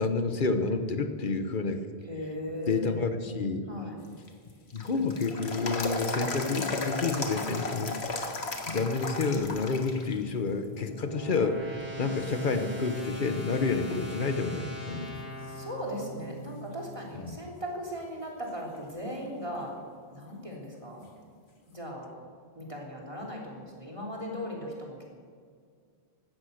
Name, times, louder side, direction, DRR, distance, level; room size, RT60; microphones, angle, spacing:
voice 1, 0.0-1.9 2.7-3.7 4.7-8.4 8.7-15.2 17.2-17.4, left 4 dB, 55° left, 8 dB, 1.3 m, -29 dB
voice 2, 2.1-3.1 3.7-4.0 15.4-19.7 20.1-21.0 21.7-22.1 22.6-25.0, equal, 30° right, -2 dB, 3.5 m, -38 dB
sound 1, 4.0-10.1 10.5-10.6 11.4-11.9 12.4-12.5 13.0-14.2 14.5-14.6 18.0-18.1 21.0-21.1, left 2 dB, 80° left, 1.9 m, -35 dB
sound 2, 9.8-16.9, equal, 60° right, 5.4 m, -42 dB
16.5 x 13.0 x 6.6 m, 2.1 s
omnidirectional pair, 1.1 m